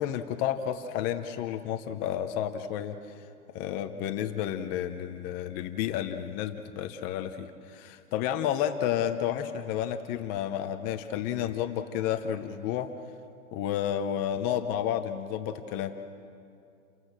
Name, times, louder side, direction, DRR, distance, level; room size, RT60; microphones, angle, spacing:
voice 1, 0.0-3.0 3.5-12.9 13.5-15.9, left 10 dB, 20° left, 7 dB, 0.7 m, -31 dB
29.5 x 21.0 x 7.5 m, 2.4 s
hypercardioid pair, 150°, 45 cm